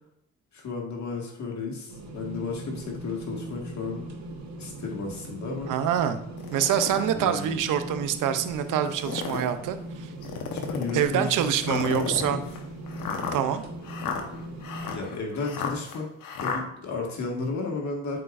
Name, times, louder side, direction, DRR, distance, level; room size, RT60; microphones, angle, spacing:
voice 1, 0.5-4.1 4.6-5.7 7.1-7.6 10.5-12.4 14.3-14.5 14.9-16.1 16.4-18.2, left 3 dB, 60° left, 0 dB, 1.8 m, -33 dB
sound 1, 1.9-15.0, right 1 dB, 60° right, 1.3 m, -39 dB
voice 2, 5.7-6.2 6.5-10.1 10.9-12.4 13.3-13.6, right 9 dB, 80° right, 10 dB, 0.6 m, -26 dB
sound 2, 6.4-7.1 7.7-7.8 8.8-9.5 10.2-11.0 11.6-16.6, left 6 dB, 80° left, 1.0 m, -34 dB
8.2 x 4.7 x 2.5 m, 0.75 s
supercardioid pair, 65°, 31 cm